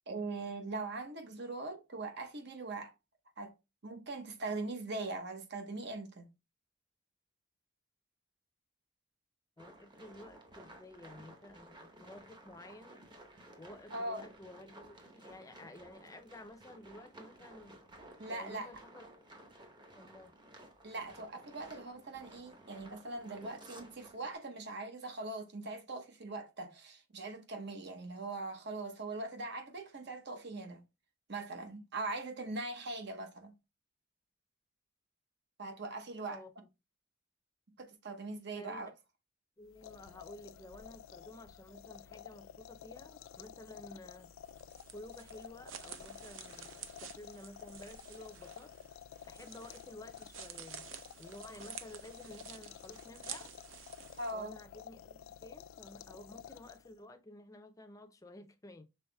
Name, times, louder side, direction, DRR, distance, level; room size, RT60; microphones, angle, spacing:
voice 1, 0.1-2.9 3.4-3.5 3.8-6.3 13.9-14.3 18.2-18.7 20.8-30.8 31.3-33.5 35.6-36.4 37.8-38.9 54.2-54.5, right 2 dB, 55° right, 0.9 m, -41 dB
voice 2, 9.6-13.0 13.6-17.8 18.3-19.0 20.0-20.3 36.2-36.5 38.5-38.9 39.6-44.3 44.9-48.7 49.2-50.9 51.2-53.5 54.3-58.8, left 1 dB, 15° left, 0.5 m, -53 dB
sound 1, 9.6-24.3, right 1 dB, 20° right, 0.8 m, -55 dB
sound 2, 39.7-57.1, left 9 dB, 80° left, 0.3 m, -52 dB
sound 3, 44.2-54.3, right 9 dB, 75° right, 0.6 m, -51 dB
5.6 x 3.8 x 2.2 m
head